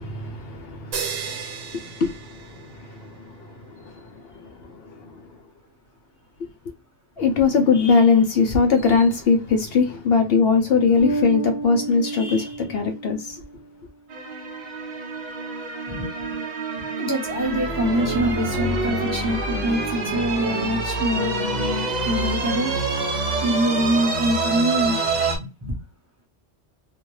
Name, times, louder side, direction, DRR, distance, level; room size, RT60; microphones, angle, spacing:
voice 1, 0.0-5.2 6.4-6.5 7.2-13.4, left 5 dB, 65° left, 0.7 m, -21 dB
sound 1, 0.9-3.1, right 6 dB, 85° right, 1.0 m, -33 dB
Bass guitar, 11.0-13.6, right 3 dB, 15° left, 1.0 m, -30 dB
sound 2, 14.1-25.4, right 3 dB, 45° right, 0.7 m, -26 dB
voice 2, 15.9-16.4 16.8-22.7 23.4-25.8, equal, 15° right, 0.9 m, -25 dB
2.4 x 2.2 x 3.1 m
omnidirectional pair, 1.2 m